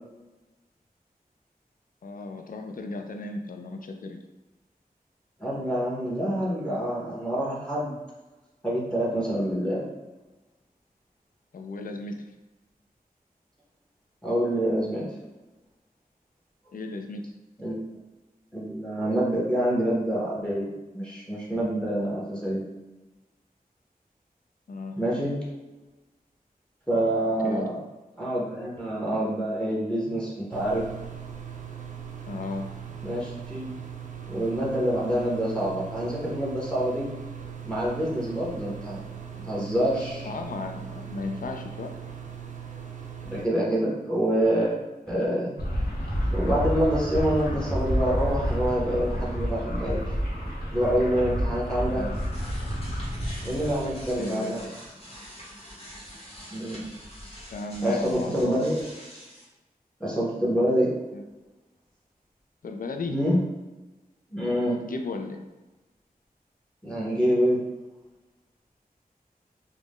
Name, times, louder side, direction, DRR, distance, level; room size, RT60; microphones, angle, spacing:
voice 1, 2.0-4.2 11.5-12.3 16.7-17.3 24.7-25.0 27.4-27.7 32.3-32.7 40.2-42.0 51.9-52.2 54.2-54.6 57.5-58.6 61.1-61.2 62.6-63.2 64.7-65.5, left 3 dB, 60° left, 4 dB, 0.4 m, -35 dB
voice 2, 5.4-8.0 8.6-9.8 14.2-15.0 17.6-17.8 18.5-20.7 20.9-22.6 25.0-25.4 26.9-27.8 28.2-30.8 33.0-33.8 34.3-37.1 37.6-39.0 39.4-40.3 43.2-45.5 46.3-50.1 50.7-52.0 53.4-54.6 56.5-56.9 57.8-58.8 60.0-60.9 63.1-63.4 64.3-64.8 66.8-67.6, equal, 5° left, -5 dB, 0.7 m, -26 dB
sound 1, 30.5-43.4, right 8 dB, 55° right, 0.4 m, -40 dB
sound 2, 45.6-54.2, equal, 85° left, 0.9 m, -29 dB
sound 3, 51.9-59.4, left 1 dB, 40° left, 1.1 m, -43 dB
2.4 x 2.1 x 3.5 m, 1.1 s
wide cardioid pair, 50°, 16 cm